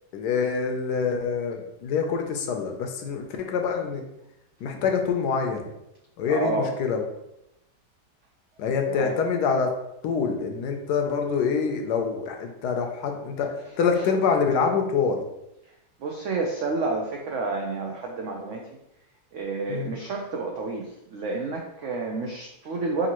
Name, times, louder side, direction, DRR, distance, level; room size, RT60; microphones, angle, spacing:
voice 1, 0.1-4.0 4.6-5.7 6.2-7.0 8.6-9.7 10.0-15.2 19.7-19.9, left 5 dB, 75° left, 4 dB, 1.1 m, -26 dB
voice 2, 6.3-6.8 8.9-9.2 13.9-14.1 16.0-18.6 19.3-23.1, right 3 dB, 85° right, 1 dB, 0.6 m, -30 dB
5.1 x 2.7 x 2.9 m, 0.85 s
omnidirectional pair, 1.9 m